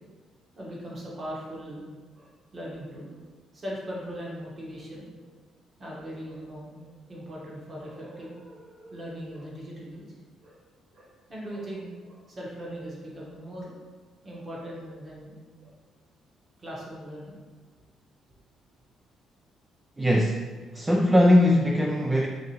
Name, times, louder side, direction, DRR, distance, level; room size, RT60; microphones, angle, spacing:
voice 1, 0.5-1.8 2.1-3.3 3.5-5.3 5.8-10.0 10.4-10.6 10.9-13.8 14.2-15.3 15.6-15.7 16.6-17.3, equal, 40° right, -5 dB, 1.4 m, -40 dB
voice 2, 20.0-20.5 20.7-22.3, left 1 dB, 15° right, 0 dB, 0.4 m, -20 dB
4.7 x 2.7 x 3.0 m, 1.4 s
supercardioid pair, 65°, 0 cm